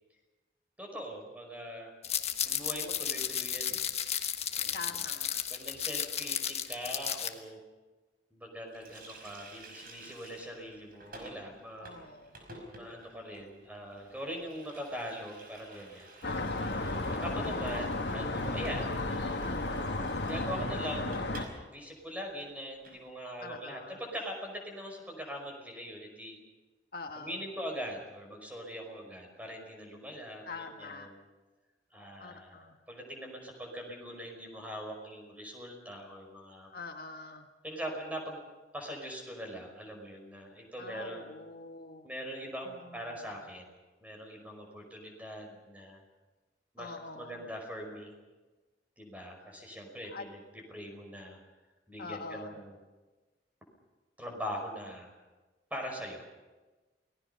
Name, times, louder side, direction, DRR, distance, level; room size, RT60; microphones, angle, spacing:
voice 1, 0.8-1.9 2.4-3.9 4.5-4.9 5.5-7.6 8.3-11.9 12.7-16.1 17.2-19.7 20.2-21.3 21.7-26.4 27.2-31.2 31.9-36.7 37.6-38.4 38.7-41.4 42.0-43.8 44.0-46.0 46.7-48.1 49.0-50.4 50.7-51.4 51.9-52.7 54.2-55.1 55.7-56.2, equal, 10° right, 2 dB, 5.4 m, -42 dB
sound 1, 2.0-7.3, left 9 dB, 40° left, 1.4 m, -33 dB
voice 2, 4.7-5.4 11.8-12.4 16.2-17.5 23.4-24.0 26.9-27.4 30.4-31.1 32.2-32.8 36.7-37.5 40.8-42.1 42.7-43.1 46.8-47.4 50.1-50.2 52.0-52.6, left 3 dB, 60° left, 5 dB, 1.5 m, -44 dB
Water tap faucet, 8.7-21.6 21.9-22.0 22.3-23.0, right 1 dB, 55° right, 5.6 m, -51 dB
sound 2, 16.2-21.5, left 2 dB, 80° left, 2.0 m, -33 dB
29.0 x 19.5 x 5.7 m, 1.2 s
head